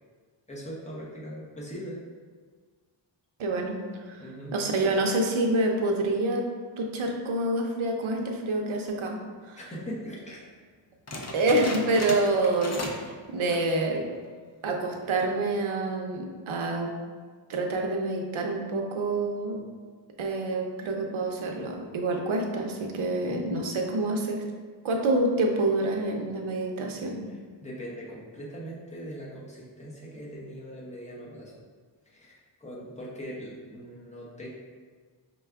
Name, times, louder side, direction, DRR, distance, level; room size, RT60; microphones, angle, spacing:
voice 1, 0.5-2.0 4.2-4.6 9.5-10.4 27.3-31.5 32.1-34.5, equal, 15° left, -6 dB, 0.9 m, -40 dB
voice 2, 3.4-3.8 4.1-4.2 4.5-6.5 6.8-9.2 9.4-9.6 11.3-14.1 14.6-16.9 17.5-19.6 20.2-24.4 24.8-27.2, right 2 dB, 90° right, 2 dB, 0.7 m, -27 dB
sound 1, 11.1-13.1 13.4-13.8 14.2-14.3 15.0-15.4, left 2 dB, 35° left, 0.4 m, -36 dB
5.2 x 2.3 x 3.4 m, 1.6 s
wide cardioid pair, 145°, 47 cm